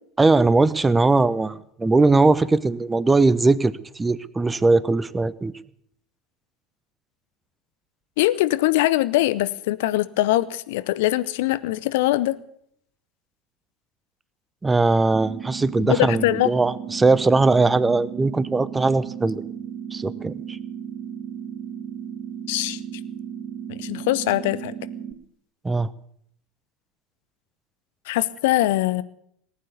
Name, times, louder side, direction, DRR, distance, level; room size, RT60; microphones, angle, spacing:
voice 1, 0.2-5.5 14.6-19.4 19.9-20.6 25.6-25.9, right 3 dB, 15° right, 18 dB, 0.8 m, -20 dB
voice 2, 8.2-12.4 15.8-16.5 22.5-22.8 23.7-24.7 28.1-29.0, left 16 dB, 65° left, 16 dB, 0.8 m, -22 dB
sound 1, 15.1-25.1, right 8 dB, 40° right, 3.6 m, -35 dB
19.0 x 9.4 x 8.2 m, 0.69 s
figure-of-eight pair, 70°, 0 cm